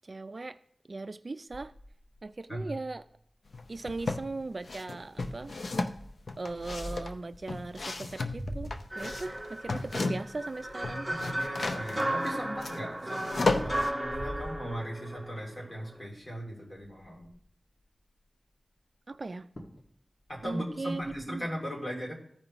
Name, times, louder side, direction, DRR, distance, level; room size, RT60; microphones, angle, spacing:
voice 1, 0.0-0.6 0.9-1.7 2.2-3.0 3.7-5.6 6.4-11.1 19.1-19.5 20.4-21.5, right 3 dB, 50° right, 12 dB, 0.3 m, -38 dB
sound 1, 1.5-3.0 3.5-3.6 3.9-4.1 4.6-4.9 5.8-7.2 7.9-11.8 12.3-15.3 15.8-16.1 16.3-16.4 16.7-17.5 19.1-19.2 19.6-19.9 20.2-21.2, equal, 50° left, 1.8 m, -45 dB
sound 2, 3.5-4.3 4.7-10.4 10.7-13.9, left 3 dB, 75° left, 0.7 m, -34 dB
sound 3, 8.9-16.0, right 1 dB, 15° right, 1.2 m, -35 dB
voice 2, 11.2-17.3 20.3-22.1, equal, 30° left, -2 dB, 2.8 m, -38 dB
14.5 x 5.3 x 3.0 m, 0.69 s
wide cardioid pair, 90°, 0 cm